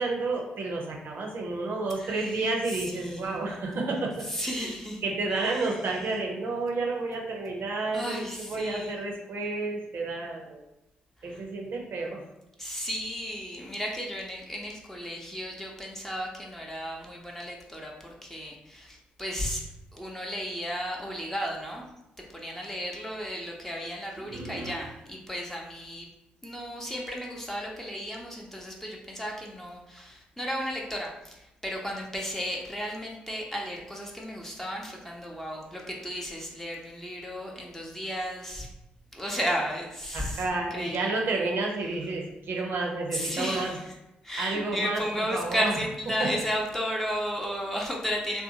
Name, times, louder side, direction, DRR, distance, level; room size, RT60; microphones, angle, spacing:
voice 1, 0.0-4.7 5.0-10.6 11.2-12.2 24.3-24.7 40.1-43.8 44.4-45.0 45.3-45.7, right 3 dB, 55° right, 0 dB, 0.6 m, -31 dB
voice 2, 2.0-3.6 4.2-5.0 5.3-5.8 7.9-9.0 11.2-11.4 12.6-19.6 19.9-21.8 22.3-26.1 26.4-38.7 39.1-41.1 43.1-43.9 44.2-48.4, equal, 10° left, -1 dB, 0.7 m, -34 dB
2.6 x 2.1 x 2.7 m, 0.91 s
hypercardioid pair, 40°, 4 cm